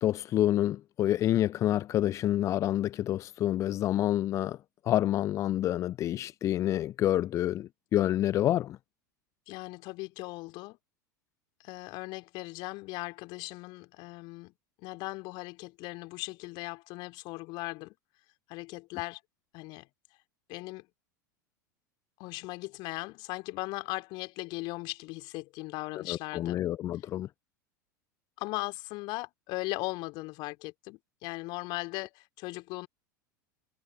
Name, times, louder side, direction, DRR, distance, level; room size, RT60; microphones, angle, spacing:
voice 1, 0.0-4.6 4.9-8.8 26.1-27.3, left 12 dB, 30° left, 0.4 m, -28 dB
voice 2, 9.5-10.8 11.6-14.5 14.8-17.9 18.5-19.2 19.5-19.9 20.5-20.9 22.2-26.6 28.4-32.9, left 23 dB, 45° left, 2.6 m, -38 dB
figure-of-eight pair, 80°, 10 cm